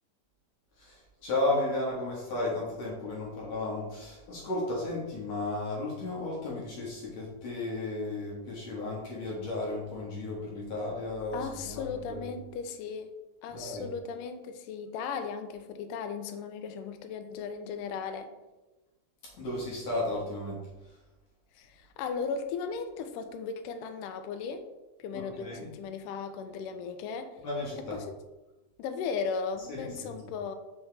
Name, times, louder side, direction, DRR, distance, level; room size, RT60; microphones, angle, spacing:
voice 1, 0.8-12.2 13.5-13.8 19.2-21.0 25.1-25.7 27.4-28.0 29.7-30.1, left 2 dB, 60° left, -4 dB, 2.0 m, -34 dB
voice 2, 11.3-13.1 13.4-18.3 21.5-24.7 25.0-27.3 27.9-28.1 28.8-30.6, left 5 dB, 85° left, 7 dB, 1.9 m, -36 dB
5.8 x 5.8 x 3.3 m, 1.1 s
omnidirectional pair, 4.5 m